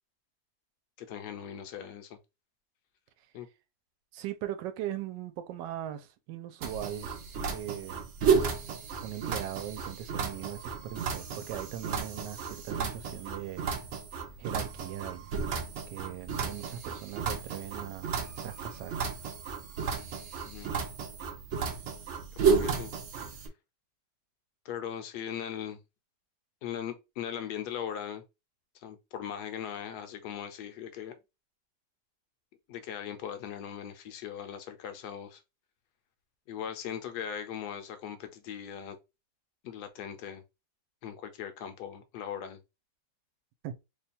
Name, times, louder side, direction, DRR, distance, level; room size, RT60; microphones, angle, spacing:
voice 1, 1.0-2.2 3.3-3.5 20.4-20.7 22.4-22.9 23.3-23.5 24.6-25.8 26.6-28.2 28.8-31.1 32.7-35.4 36.5-39.0 39.6-40.4 41.0-42.6, left 9 dB, 75° left, 1.2 m, -39 dB
voice 2, 4.1-7.1 7.5-8.1 9.0-13.7 14.4-15.3 15.9-18.1 18.4-19.0 43.6-43.7, right 11 dB, 85° right, 1.2 m, -39 dB
sound 1, 6.6-23.5, right 6 dB, 65° right, 0.7 m, -32 dB
3.0 x 2.3 x 4.2 m
omnidirectional pair, 1.9 m